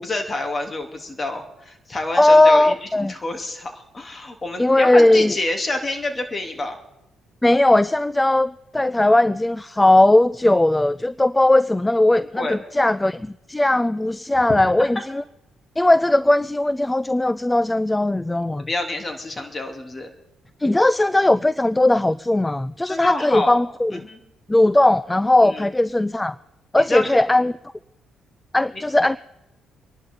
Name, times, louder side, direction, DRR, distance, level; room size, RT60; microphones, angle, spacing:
voice 1, 0.0-6.8 12.2-12.6 14.5-14.9 18.7-20.1 22.8-23.6 23.9-24.2 25.4-25.6 26.8-27.1 28.7-28.8, left 2 dB, 35° left, 4 dB, 3.0 m, -28 dB
voice 2, 2.2-3.1 4.6-5.3 7.4-15.2 15.8-18.7 20.6-24.0 24.5-26.4 26.7-27.5 28.5-29.2, left 1 dB, 15° left, 17 dB, 0.4 m, -18 dB
26.5 x 11.5 x 3.8 m, 0.92 s
hypercardioid pair, 55°, 0 cm